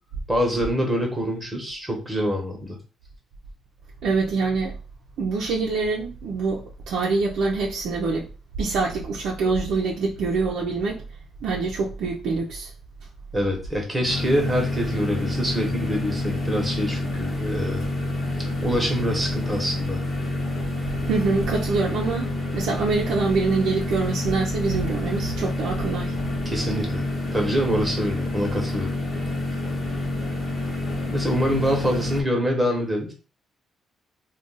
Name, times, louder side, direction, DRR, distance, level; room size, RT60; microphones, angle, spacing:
voice 1, 0.3-2.8 13.3-17.9 18.6-20.0 26.4-27.0 27.3-28.9 31.1-33.1, equal, 15° right, 1.0 m, -25 dB
voice 2, 4.0-4.7 5.2-8.3 8.6-11.0 11.4-12.7 21.1-26.1, right 4 dB, 80° right, 0.5 m, -25 dB
sound 1, 14.1-32.2, left 1 dB, 40° left, 1.0 m, -28 dB
2.5 x 2.3 x 3.8 m
cardioid pair, 90°, 0 cm